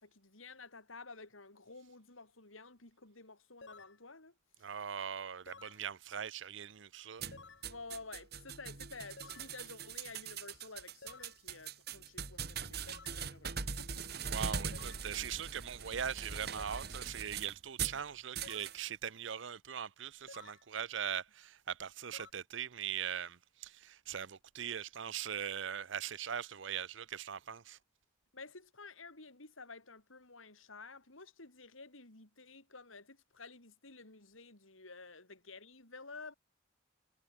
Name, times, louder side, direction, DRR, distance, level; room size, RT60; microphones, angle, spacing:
voice 1, 0.0-4.3 7.6-14.0 28.3-36.3, left 3 dB, 90° left, 4.6 m, -52 dB
sound 1, 3.6-4.0 5.5-5.8 7.3-7.7 9.2-9.5 11.0-11.4 12.9-13.2 14.7-15.1 16.6-16.9 18.4-18.8 20.3-20.6 22.1-22.3, left 4 dB, 65° left, 1.8 m, -53 dB
voice 2, 4.6-7.2 14.2-27.8, right 8 dB, 70° right, 0.7 m, -41 dB
sound 2, 7.2-18.0 18.4-18.8, right 6 dB, 55° right, 2.5 m, -41 dB
head